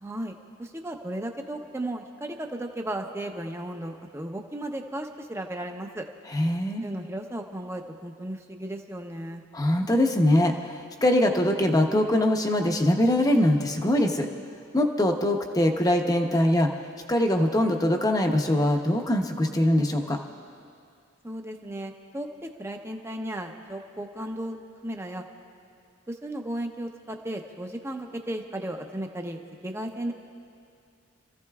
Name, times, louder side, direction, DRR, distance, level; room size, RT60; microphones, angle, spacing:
voice 1, 0.0-6.0 6.8-9.4 21.2-24.6 24.8-25.2 26.1-30.1, right 1 dB, 15° right, 3 dB, 0.7 m, -35 dB
voice 2, 6.3-6.9 9.5-14.3 14.7-16.7 17.1-20.2, left 1 dB, 20° left, 3 dB, 0.8 m, -22 dB
29.0 x 15.0 x 2.4 m, 2.3 s
head